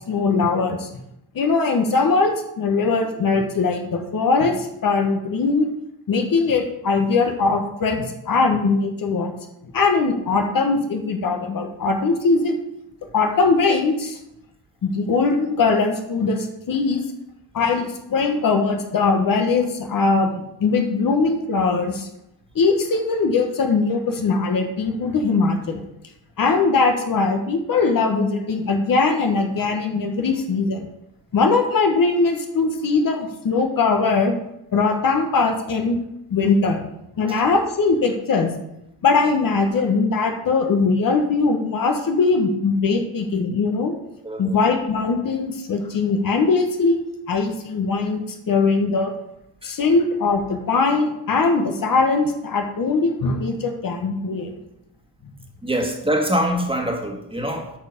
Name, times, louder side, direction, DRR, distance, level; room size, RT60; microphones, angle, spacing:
voice 1, 0.1-0.9 1.3-5.7 6.1-9.3 9.7-12.6 13.1-14.2 14.8-17.0 17.5-22.1 22.5-25.8 26.4-30.9 31.3-34.4 34.7-36.0 36.3-36.9 37.2-38.5 39.0-44.0 44.4-49.1 49.6-54.5, left 4 dB, 55° left, 4 dB, 1.3 m, -21 dB
voice 2, 44.2-44.6 49.6-49.7 55.6-57.7, equal, 15° right, 2 dB, 1.7 m, -24 dB
9.1 x 5.3 x 5.2 m, 0.81 s
cardioid pair, 95°, 41 cm